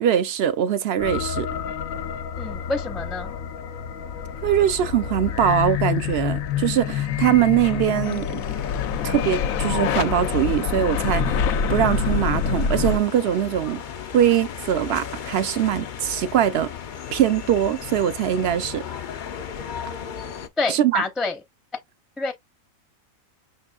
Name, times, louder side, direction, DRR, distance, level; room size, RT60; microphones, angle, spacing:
voice 1, 0.0-1.5 4.4-8.3 9.0-11.4 11.7-13.8 14.1-16.7 17.1-18.8 20.7-21.0, right 10 dB, 60° right, 0.7 m, -22 dB
sound 1, 1.0-13.0, left 7 dB, 80° left, 1.0 m, -26 dB
voice 2, 2.4-3.3 20.6-21.4 22.2-22.3, left 3 dB, ahead, 0.5 m, -27 dB
sound 2, 8.4-20.5, left 8 dB, 60° left, 0.5 m, -36 dB
6.0 x 3.7 x 2.3 m
omnidirectional pair, 1.4 m